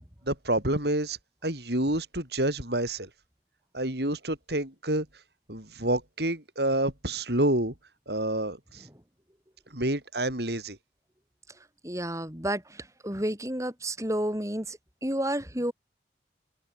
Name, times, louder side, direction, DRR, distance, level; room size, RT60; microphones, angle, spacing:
voice 1, 0.3-1.2 1.4-3.1 3.7-5.1 5.5-7.7 8.1-8.8 9.7-10.8, right 1 dB, 65° right, 6.5 m, -28 dB
voice 2, 11.8-15.7, right 1 dB, 15° right, 7.7 m, -31 dB
head